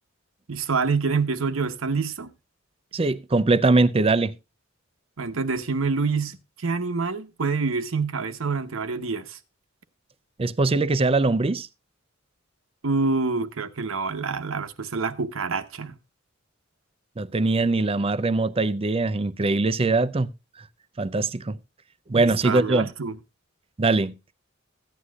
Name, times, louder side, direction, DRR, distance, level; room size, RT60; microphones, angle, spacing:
voice 1, 0.5-2.3 5.2-9.4 12.8-15.9 22.1-23.2, right 4 dB, 80° right, 0.9 m, -27 dB
voice 2, 2.9-4.3 10.4-11.7 17.2-20.3 21.0-21.6 22.1-22.9 23.8-24.1, right 3 dB, 30° right, 0.5 m, -22 dB
15.5 x 9.6 x 2.3 m
head